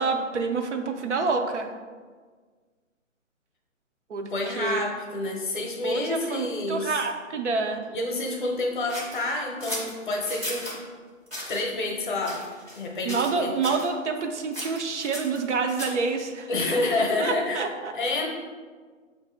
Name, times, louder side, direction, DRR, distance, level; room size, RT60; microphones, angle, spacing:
voice 1, 0.0-1.7 4.1-4.3 4.6-4.8 5.8-7.8 13.0-16.5 17.2-17.9, right 4 dB, 60° right, 5 dB, 0.6 m, -27 dB
voice 2, 4.3-7.0 7.9-10.7 11.5-12.4 12.7-13.5 16.5-17.7 17.9-18.3, left 2 dB, 40° left, 0 dB, 0.7 m, -28 dB
sound 1, 8.9-10.8 11.3-11.6 12.2-12.8 13.1-13.4 13.6-13.9 14.5-16.1, equal, 10° right, 0.6 m, -36 dB
5.4 x 2.6 x 3.7 m, 1.5 s
figure-of-eight pair, 145°, 40 cm